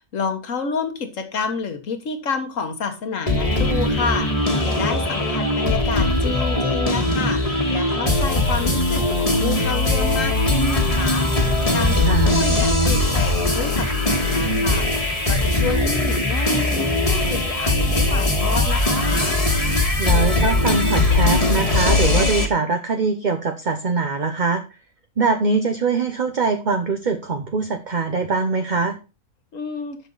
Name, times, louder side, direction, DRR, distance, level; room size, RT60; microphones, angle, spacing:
voice 1, 0.1-11.3 11.7-19.4 29.5-30.0, left 5 dB, 60° left, 6 dB, 1.8 m, -29 dB
sound 1, 3.3-22.5, left 2 dB, 25° left, 1.6 m, -20 dB
voice 2, 12.1-12.4 20.0-24.6 25.2-29.0, right 4 dB, 40° right, 5 dB, 0.8 m, -22 dB
10.5 x 6.3 x 3.9 m, 0.32 s
omnidirectional pair, 1.6 m